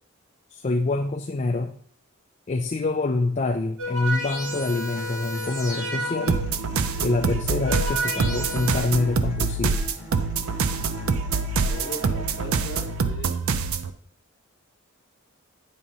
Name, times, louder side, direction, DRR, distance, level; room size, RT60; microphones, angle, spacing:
voice 1, 0.5-1.7 2.5-6.4 7.0-9.8, left 3 dB, 30° left, 2 dB, 0.4 m, -26 dB
sound 1, 3.8-6.6 7.4-8.8, equal, 90° right, 3.1 m, -31 dB
sound 2, 4.5-12.5, left 1 dB, 20° right, 1.8 m, -43 dB
sound 3, 6.3-13.9, right 4 dB, 70° right, 0.5 m, -25 dB
voice 2, 11.6-13.4, left 1 dB, 45° left, 2 dB, 1.1 m, -38 dB
8.7 x 5.3 x 2.8 m, 0.62 s
head